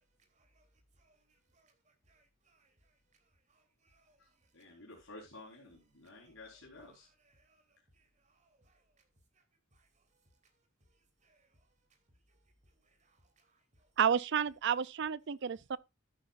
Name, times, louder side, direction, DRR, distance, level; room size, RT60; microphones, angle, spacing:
voice 1, 1.0-1.7 2.1-2.7 3.5-4.2 6.2-7.6 7.9-8.8 9.7-9.9 11.2-11.5 12.8-13.6, right 2 dB, 35° right, 3.3 m, -71 dB
voice 2, 4.5-7.1, left 2 dB, 80° left, 4.5 m, -52 dB
voice 3, 14.0-15.8, right 8 dB, 60° right, 0.5 m, -31 dB
13.0 x 10.0 x 2.5 m
head